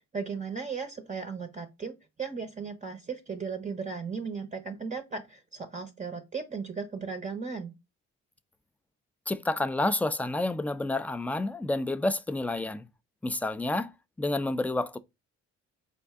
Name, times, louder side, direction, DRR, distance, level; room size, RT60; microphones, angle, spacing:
voice 1, 0.1-1.9 2.2-7.7, right 5 dB, 25° right, 0.6 m, -36 dB
voice 2, 9.3-12.9 13.2-13.9 14.2-15.0, left 2 dB, 5° left, 0.3 m, -29 dB
4.4 x 2.6 x 3.4 m
cardioid pair, 90°, 30 cm